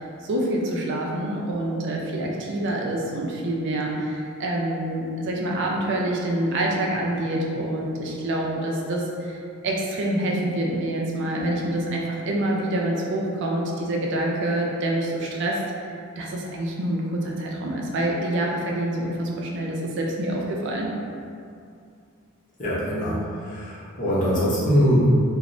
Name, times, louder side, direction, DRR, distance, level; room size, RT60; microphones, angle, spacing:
voice 1, 0.0-15.6 15.9-20.9, right 1 dB, 55° right, -1 dB, 0.4 m, -26 dB
voice 2, 22.6-25.1, equal, 35° left, -9 dB, 0.7 m, -22 dB
3.0 x 2.0 x 2.5 m, 2.4 s
head